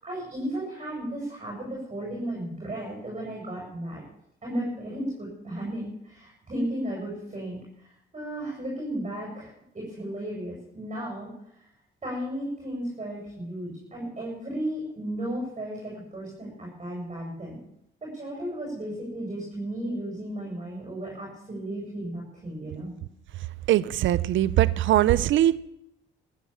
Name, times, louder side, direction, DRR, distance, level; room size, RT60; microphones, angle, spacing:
voice 1, 0.0-4.0 4.4-9.5 9.7-11.3 12.0-17.6 18.0-22.9, right 1 dB, 30° right, -3 dB, 6.9 m, -34 dB
voice 2, 23.7-25.6, right 13 dB, 75° right, 19 dB, 0.6 m, -21 dB
14.5 x 9.4 x 7.3 m, 0.76 s
cardioid pair, 90°, 20 cm